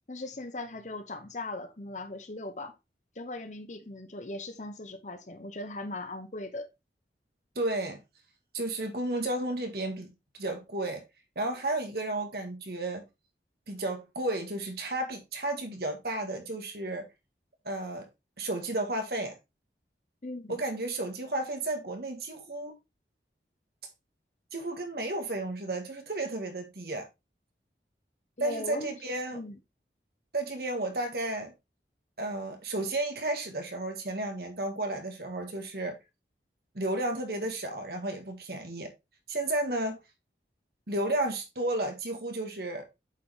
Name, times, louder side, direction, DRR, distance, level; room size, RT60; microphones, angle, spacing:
voice 1, 0.1-2.7 3.2-6.7 20.2-20.6 28.4-28.9 29.3-29.6, left 2 dB, 40° left, 0.9 m, -39 dB
voice 2, 7.6-8.0 8.5-10.1 10.4-11.0 11.4-13.1 13.7-17.1 17.7-18.1 18.4-19.4 20.5-22.7 24.5-27.1 28.4-29.4 30.3-31.5 32.2-36.0 36.7-38.9 39.3-40.0 40.9-42.9, right 2 dB, 60° right, 1.8 m, -32 dB
8.2 x 4.8 x 3.3 m
head